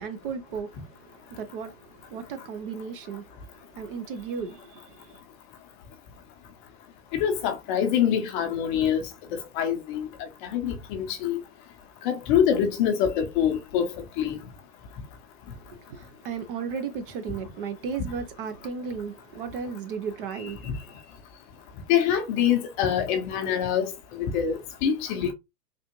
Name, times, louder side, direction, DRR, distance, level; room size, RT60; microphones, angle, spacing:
voice 1, 0.0-5.2 15.5-21.0, right 6 dB, 35° right, 0.5 m, -35 dB
voice 2, 7.1-9.0 9.3-11.4 12.0-13.9 14.2-14.4 20.6-20.7 21.9-25.3, left 9 dB, 30° left, 0.7 m, -25 dB
3.6 x 2.4 x 2.9 m
hypercardioid pair, 135°, 48 cm